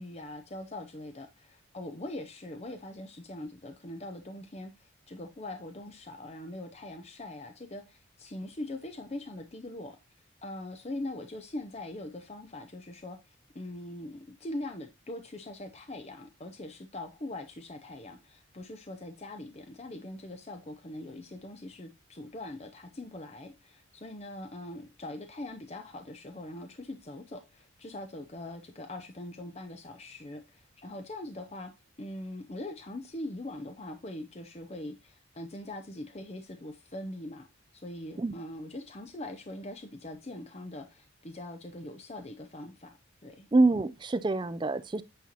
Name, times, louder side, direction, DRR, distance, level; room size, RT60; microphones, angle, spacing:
voice 1, 0.0-10.0 10.4-31.7 32.0-37.5 37.7-43.0 43.2-43.5, left 1 dB, 30° left, 0.6 m, -42 dB
voice 2, 43.5-45.0, right 2 dB, 20° right, 0.4 m, -25 dB
8.6 x 5.5 x 2.9 m
head